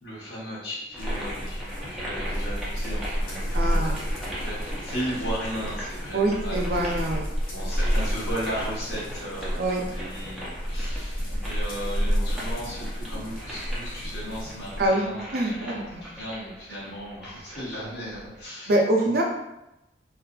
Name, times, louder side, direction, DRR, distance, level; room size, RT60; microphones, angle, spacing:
voice 1, 0.0-3.9 4.2-6.9 7.5-18.8 19.0-19.2, equal, 70° left, -8 dB, 1.1 m, -36 dB
sound 1, 0.9-18.5, equal, ahead, 0.5 m, -40 dB
sound 2, 1.0-14.9, equal, 50° left, 0.5 m, -30 dB
voice 2, 3.5-4.0 6.1-7.2 9.6-9.8 14.8-16.0 18.7-19.2, right 1 dB, 55° right, 0 dB, 0.5 m, -25 dB
2.5 x 2.4 x 2.2 m, 0.90 s
head